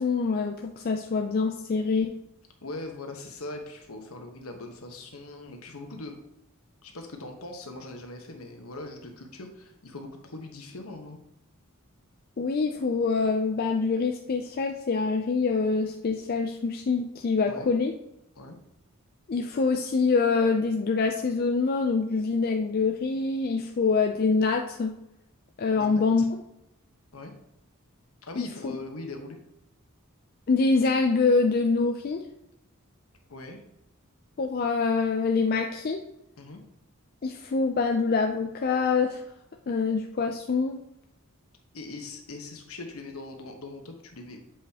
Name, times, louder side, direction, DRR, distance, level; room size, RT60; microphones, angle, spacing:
voice 1, 0.0-2.1 12.4-17.9 19.3-24.9 25.6-26.2 28.4-28.7 30.5-32.2 34.4-36.0 37.2-39.2 39.7-40.8, left 4 dB, 45° left, 3 dB, 0.4 m, -25 dB
voice 2, 2.6-6.2 6.8-11.2 17.5-17.7 18.4-18.6 25.8-26.3 27.1-27.3 28.2-29.4 33.3-33.6 36.4-36.6 41.7-44.4, left 2 dB, 70° left, 3 dB, 1.1 m, -41 dB
7.6 x 5.0 x 2.9 m, 0.85 s
head